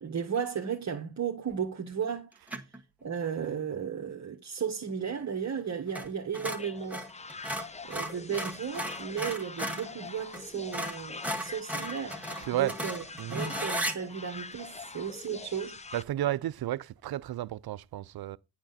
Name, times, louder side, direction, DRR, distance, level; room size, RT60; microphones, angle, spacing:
voice 1, 0.0-2.6 3.0-7.1 7.8-13.0 13.3-15.8, right 7 dB, 40° right, 1.5 m, -35 dB
sound 1, 2.5-2.8 5.9-6.1 6.3-9.9 10.3-10.4 10.7-14.0, equal, 5° right, 2.0 m, -35 dB
sound 2, 6.5-16.0, left 4 dB, 15° left, 0.6 m, -44 dB
voice 2, 12.4-12.8 13.2-13.5 15.9-18.4, right 13 dB, 55° right, 0.6 m, -32 dB
8.6 x 6.8 x 4.1 m
supercardioid pair, 60°, 45 cm